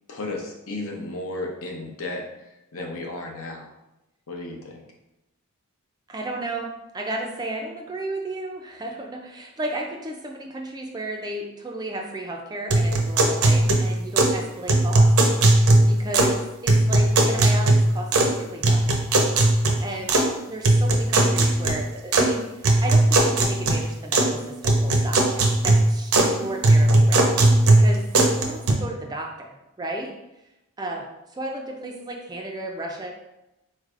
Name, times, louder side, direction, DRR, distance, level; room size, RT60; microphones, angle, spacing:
voice 1, 0.1-3.7 4.3-4.8, left 2 dB, 70° left, 1 dB, 0.7 m, -34 dB
voice 2, 6.1-15.1 15.9-18.9 19.8-27.3 27.7-30.1 30.8-33.1, right 1 dB, 20° right, 1 dB, 0.3 m, -34 dB
sound 1, 12.7-14.4 14.7-16.4 16.7-18.4 18.6-20.3 20.6-22.3 22.6-24.3 24.6-26.3 26.6-28.7, right 2 dB, 70° right, 0.6 m, -18 dB
4.3 x 3.2 x 2.4 m, 0.92 s
head